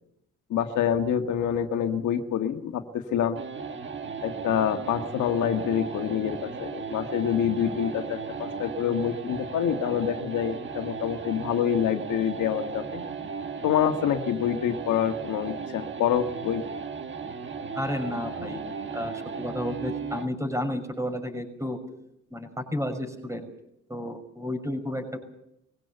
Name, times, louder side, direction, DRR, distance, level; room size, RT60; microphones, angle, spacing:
voice 1, 0.5-3.4 4.2-12.8 13.6-16.6, left 9 dB, 75° left, 5 dB, 1.7 m, -26 dB
sound 1, 3.4-20.4, right 5 dB, 40° right, 1.9 m, -36 dB
voice 2, 17.7-18.6 18.9-21.8 22.3-23.5 23.9-25.2, left 1 dB, 10° right, 6 dB, 6.1 m, -32 dB
22.0 x 16.5 x 8.0 m, 0.78 s
cardioid pair, 90°, 30 cm